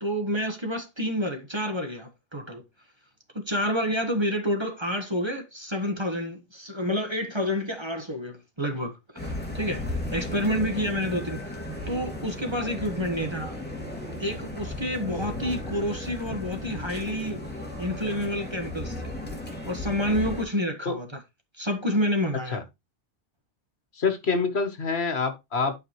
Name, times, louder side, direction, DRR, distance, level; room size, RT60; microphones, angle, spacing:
voice 1, 0.0-2.6 3.3-13.6 14.2-19.1 19.6-21.2 21.5-22.6, equal, 25° right, 1.4 m, -29 dB
sound 1, 9.2-20.4, left 1 dB, 10° left, 2.5 m, -35 dB
voice 2, 23.9-25.7, left 4 dB, 65° left, 1.6 m, -26 dB
11.5 x 5.0 x 3.1 m
omnidirectional pair, 1.2 m